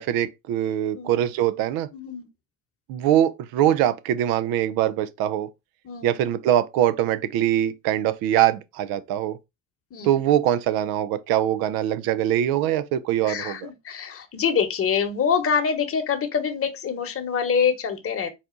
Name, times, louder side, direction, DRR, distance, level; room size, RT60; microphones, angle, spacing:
voice 1, 0.0-1.9 2.9-5.5 6.0-9.4 10.0-13.7, right 11 dB, 70° right, 0.6 m, -23 dB
voice 2, 1.9-2.3 5.8-6.1 9.9-10.1 13.2-18.3, left 6 dB, 35° left, 1.0 m, -25 dB
4.2 x 2.3 x 3.7 m
hypercardioid pair, 70°, 38 cm